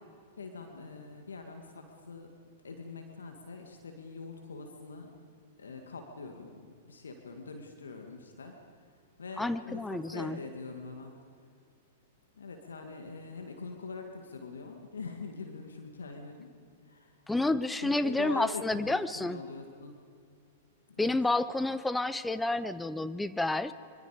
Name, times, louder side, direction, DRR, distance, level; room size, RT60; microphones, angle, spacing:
voice 1, 0.4-2.3 2.6-5.2 5.6-8.6 9.2-11.2 12.4-16.5 16.8-17.2 17.8-20.0 20.9-21.1, left 4 dB, 80° left, 4 dB, 2.1 m, -43 dB
voice 2, 9.4-10.4 17.3-19.4 21.0-23.7, left 2 dB, 5° left, 13 dB, 0.7 m, -30 dB
25.0 x 24.0 x 5.1 m, 2.3 s
figure-of-eight pair, 105°, 0 cm